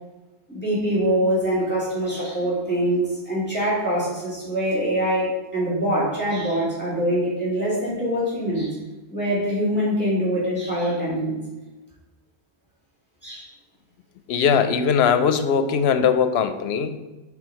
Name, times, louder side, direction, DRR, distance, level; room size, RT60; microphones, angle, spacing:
voice 1, 0.5-8.7 9.1-11.4 13.2-13.5, equal, 10° left, -8 dB, 2.0 m, -24 dB
voice 2, 14.3-17.0, left 7 dB, 80° left, 9 dB, 0.8 m, -20 dB
4.6 x 4.0 x 5.1 m, 1.1 s
omnidirectional pair, 1.1 m